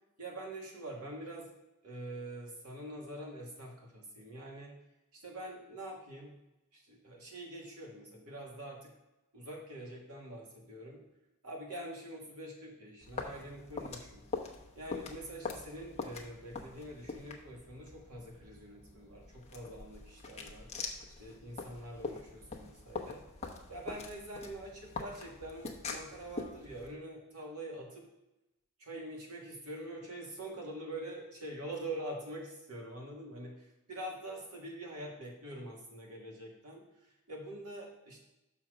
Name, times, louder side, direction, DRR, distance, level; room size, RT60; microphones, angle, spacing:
voice 1, 0.2-1.5 1.8-4.8 5.1-6.4 6.7-8.9 9.3-11.0 11.4-14.2 14.8-20.7 21.2-23.2 23.7-28.0 28.8-38.2, right 1 dB, 75° right, -1 dB, 2.1 m, -45 dB
sound 1, 13.0-26.9, left 4 dB, 30° left, 0.9 m, -44 dB
6.1 x 4.4 x 6.3 m, 0.95 s
head